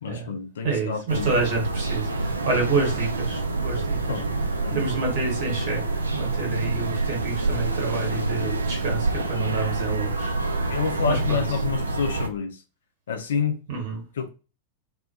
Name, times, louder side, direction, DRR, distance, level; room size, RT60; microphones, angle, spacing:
voice 1, 0.0-1.3 4.1-4.8 8.0-8.1 10.7-12.6 13.1-13.6 14.2-14.3, left 6 dB, 65° left, 0.4 m, -28 dB
voice 2, 0.6-11.6 13.7-14.0, right 4 dB, 55° right, 1.1 m, -29 dB
sound 1, 1.1-12.3, right 3 dB, 75° right, 0.3 m, -27 dB
2.2 x 2.1 x 2.7 m
figure-of-eight pair, 90°, 0 cm